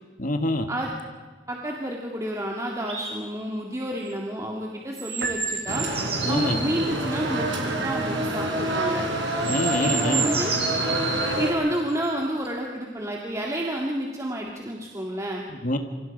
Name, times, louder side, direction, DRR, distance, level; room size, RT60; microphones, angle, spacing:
voice 1, 0.2-0.7 6.2-6.6 9.4-10.3 15.6-15.8, left 1 dB, 45° left, 7 dB, 1.7 m, -25 dB
voice 2, 1.5-5.9 6.3-9.0 9.8-10.5 11.4-15.4, right 1 dB, 15° right, -1 dB, 2.0 m, -30 dB
sound 1, 2.9-3.1 5.0-6.9 8.8-8.9 9.3-11.3 12.4-12.5, right 5 dB, 35° right, 4.9 m, -30 dB
Piano, 5.2-6.5, right 2 dB, 55° right, 1.6 m, -34 dB
sound 2, 5.7-11.5, right 1 dB, 80° right, 4.4 m, -27 dB
27.5 x 25.0 x 5.3 m, 1.4 s
head